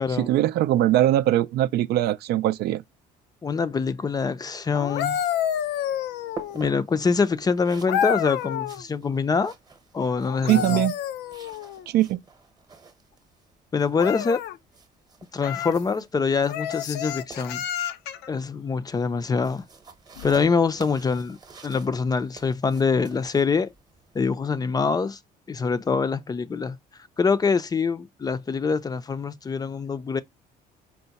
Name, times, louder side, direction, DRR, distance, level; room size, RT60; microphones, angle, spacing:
voice 1, 0.2-2.8 10.5-10.9 11.9-12.2, right 13 dB, 70° right, 0.4 m, -21 dB
voice 2, 3.4-5.2 6.5-9.5 9.9-10.8 13.7-14.4 15.3-17.6 18.3-19.6 20.2-21.4 21.6-23.7 24.1-25.2 25.5-26.8 27.2-30.2, left 5 dB, 20° left, 0.4 m, -24 dB
sound 1, 4.7-6.7 7.9-8.8 10.2-11.9 14.0-14.6 15.4-15.8 16.5-18.3 20.2-20.4, left 10 dB, 85° left, 0.5 m, -29 dB
sound 2, 5.4-24.2, right 5 dB, 25° right, 0.9 m, -48 dB
4.6 x 2.1 x 4.0 m
cardioid pair, 110°, 17 cm